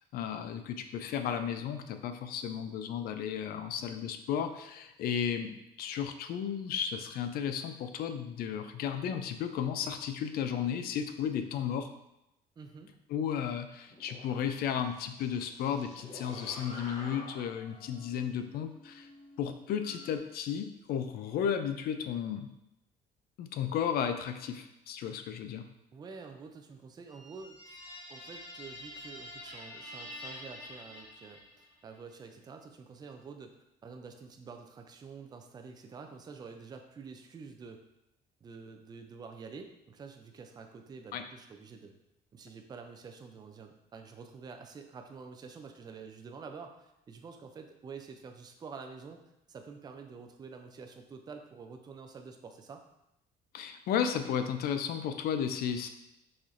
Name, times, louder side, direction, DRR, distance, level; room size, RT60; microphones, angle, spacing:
voice 1, 0.1-11.9 13.1-19.1 19.4-22.5 23.4-25.6 41.1-41.2 53.5-55.9, left 8 dB, 65° left, 8 dB, 0.4 m, -34 dB
voice 2, 12.6-12.9 25.9-27.8 28.1-33.5 33.8-37.8 38.4-41.9 42.3-49.2 49.5-52.8, right 5 dB, 25° right, 5 dB, 0.4 m, -48 dB
sound 1, 13.9-20.2, left 1 dB, 40° left, 0.9 m, -50 dB
sound 2, 27.1-31.8, left 1 dB, 25° left, 1.4 m, -47 dB
4.1 x 2.8 x 2.5 m, 0.87 s
cardioid pair, 110°, 17 cm